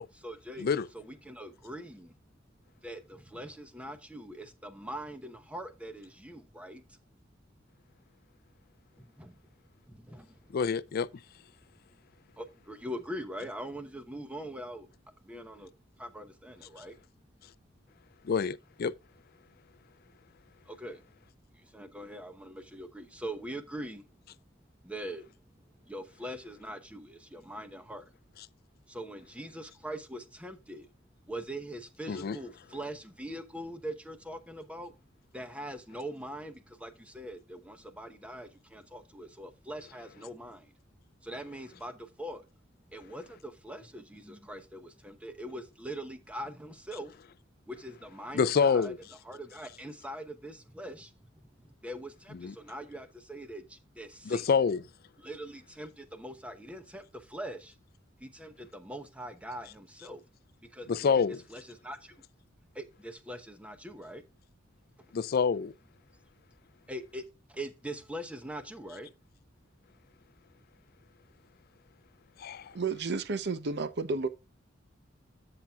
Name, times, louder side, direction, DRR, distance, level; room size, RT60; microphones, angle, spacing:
voice 1, 0.2-2.1 2.8-7.0 9.0-9.3 9.9-10.4 12.4-14.9 15.2-15.7 16.0-17.0 20.6-21.0 21.5-24.0 24.8-25.3 25.8-28.1 28.9-30.9 31.3-34.9 35.3-40.7 41.2-42.5 42.9-47.1 47.7-48.9 49.2-54.6 55.2-57.7 58.2-60.2 60.7-62.1 62.7-64.2 66.9-67.2 67.5-69.1, right 1 dB, 5° right, 0.9 m, -42 dB
voice 2, 10.5-11.1 18.2-18.9 32.1-32.4 48.3-48.9 52.4-52.5 54.3-54.8 60.9-61.4 65.1-65.7 72.4-72.7, left 5 dB, 50° left, 0.4 m, -27 dB
voice 3, 72.7-74.3, right 4 dB, 60° right, 0.7 m, -31 dB
13.5 x 5.9 x 2.4 m
head